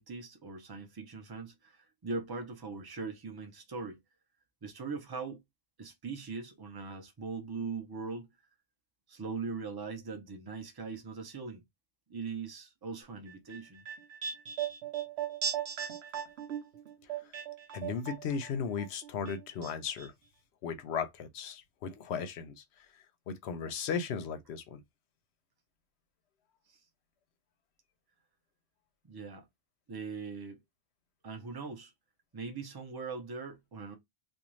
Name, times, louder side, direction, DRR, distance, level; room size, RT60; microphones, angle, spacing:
voice 1, 0.0-4.0 4.6-5.4 5.8-8.3 9.1-11.6 12.1-13.8 26.7-26.8 29.0-29.4 29.9-30.6 31.2-31.9 32.3-34.0, right 4 dB, 35° right, 0.4 m, -40 dB
sound 1, 13.3-18.5 18.8-19.7 20.0-20.1, right 8 dB, 65° right, 0.8 m, -38 dB
voice 2, 17.7-20.1 20.6-22.6 23.3-24.8, left 6 dB, 70° left, 0.8 m, -36 dB
2.5 x 2.3 x 3.0 m
omnidirectional pair, 1.3 m